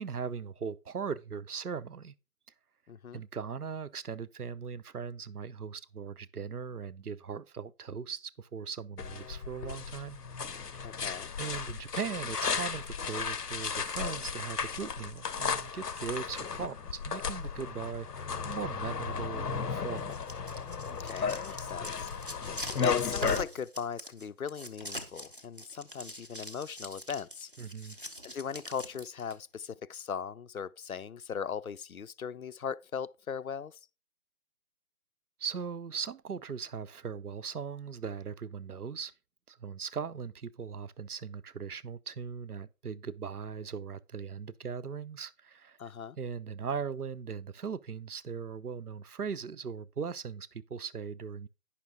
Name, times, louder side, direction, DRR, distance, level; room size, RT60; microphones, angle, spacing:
voice 1, 0.0-2.1 3.1-10.2 10.7-10.8 11.4-20.1 27.6-28.0 35.4-39.1 39.5-45.8 46.2-51.5, right 6 dB, 75° right, 0.7 m, -39 dB
voice 2, 2.9-3.2 10.8-11.3 21.0-22.1 22.8-27.5 28.2-33.8 45.8-46.2, left 7 dB, 65° left, 0.5 m, -39 dB
sound 1, 9.0-23.4, left 6 dB, 90° left, 0.8 m, -35 dB
sound 2, 20.0-29.3, equal, 35° right, 0.6 m, -43 dB
10.0 x 5.8 x 3.7 m
figure-of-eight pair, 175°, 46 cm